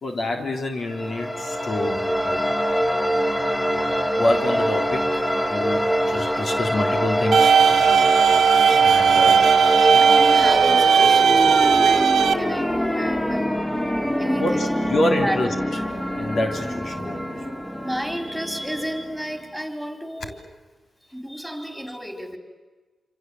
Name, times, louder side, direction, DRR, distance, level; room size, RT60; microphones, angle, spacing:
voice 1, 0.0-2.4 4.2-5.1 5.5-7.6 8.8-9.4 14.3-15.5 16.1-17.2, left 1 dB, 65° left, 3 dB, 3.4 m, -26 dB
sound 1, 0.9-19.5, equal, 20° left, 3.2 m, -24 dB
sound 2, 7.3-12.3, right 7 dB, 80° right, 1.1 m, -16 dB
voice 2, 8.2-9.2 9.8-13.5 14.2-14.9 15.2-15.4 17.8-20.4 21.1-22.4, equal, ahead, 5 dB, 4.1 m, -32 dB
27.5 x 26.0 x 7.8 m, 1.3 s
cardioid pair, 85°, 0 cm